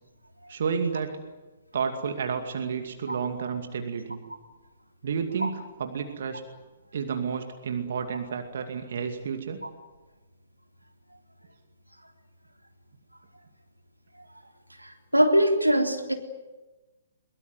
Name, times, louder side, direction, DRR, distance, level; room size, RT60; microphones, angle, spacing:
voice 1, 0.5-1.2 1.7-4.2 5.0-6.4 6.9-9.6, right 6 dB, 50° right, 6 dB, 2.4 m, -31 dB
voice 2, 14.8-16.1, equal, 90° right, 3 dB, 3.6 m, -22 dB
23.0 x 22.5 x 9.4 m, 1.2 s
figure-of-eight pair, 125°, 0 cm